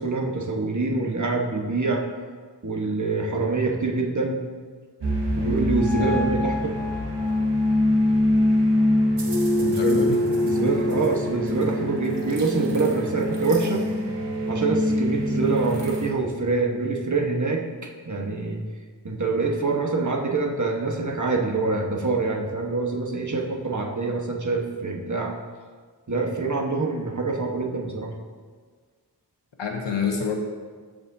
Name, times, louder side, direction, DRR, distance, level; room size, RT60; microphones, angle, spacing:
voice 1, 0.0-2.1 2.6-4.5 5.4-6.7 9.6-10.1 10.4-13.8 14.5-18.6 19.0-25.3 26.1-28.1, right 3 dB, 45° right, 1 dB, 1.3 m, -25 dB
sound 1, 5.0-16.1, left 1 dB, 75° right, 1.2 m, -24 dB
voice 2, 6.0-6.5 9.6-10.2 29.6-30.4, left 6 dB, 90° left, 2 dB, 1.1 m, -28 dB
14.5 x 5.1 x 2.7 m, 1.6 s
cardioid pair, 45°, 42 cm